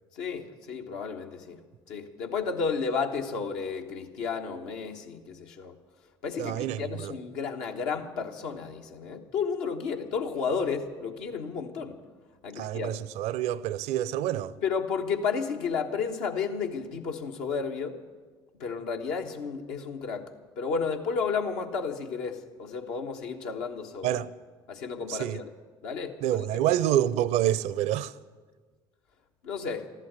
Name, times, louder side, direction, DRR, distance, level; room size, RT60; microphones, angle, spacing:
voice 1, 0.1-1.6 1.9-5.7 6.2-12.0 12.4-13.0 14.6-18.0 18.6-20.3 20.6-24.2 24.7-25.5 25.8-26.4 29.4-29.9, left 5 dB, 75° left, 1.3 m, -32 dB
voice 2, 6.4-7.1 12.6-14.5 24.0-24.3 25.1-25.4 26.2-28.1, right 12 dB, 65° right, 0.6 m, -27 dB
14.5 x 11.5 x 8.0 m
hypercardioid pair, 55°, 12 cm